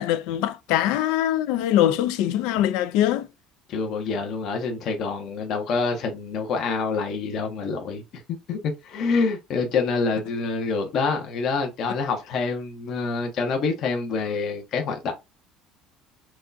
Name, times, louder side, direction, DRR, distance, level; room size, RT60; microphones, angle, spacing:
voice 1, 0.0-3.3, left 12 dB, 80° left, 0.5 m, -22 dB
voice 2, 3.7-8.2 8.5-15.1, left 4 dB, 50° left, 0.9 m, -26 dB
6.0 x 2.3 x 2.7 m
cardioid pair, 150°, 0 cm